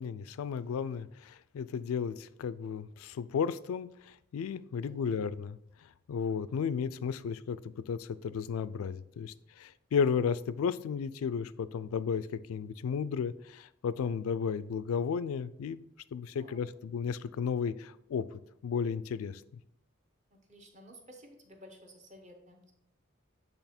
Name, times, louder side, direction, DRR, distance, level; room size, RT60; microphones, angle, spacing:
voice 1, 0.0-5.6 6.1-15.8 16.1-19.4, left 6 dB, 85° left, 16 dB, 0.3 m, -34 dB
voice 2, 4.8-5.1 16.3-16.6 20.3-22.7, equal, 35° right, 3 dB, 0.9 m, -54 dB
8.1 x 3.4 x 4.2 m, 0.77 s
head